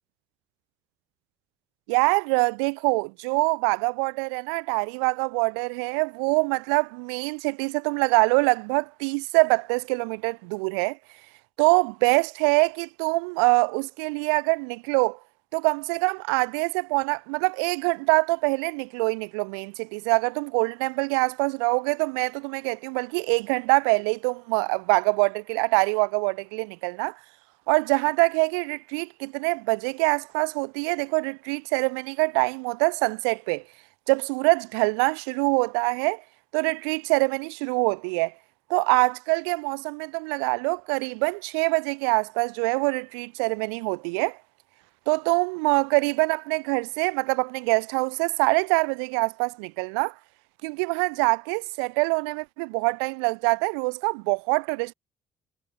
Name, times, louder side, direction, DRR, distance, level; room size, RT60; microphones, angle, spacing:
voice 1, 1.9-11.0 11.6-15.2 15.5-27.2 27.7-33.6 34.1-36.2 36.5-38.3 38.7-44.4 45.1-50.1 50.6-54.9, right 34 dB, 85° right, 5.2 m, -24 dB
hypercardioid pair, 55°, 14 cm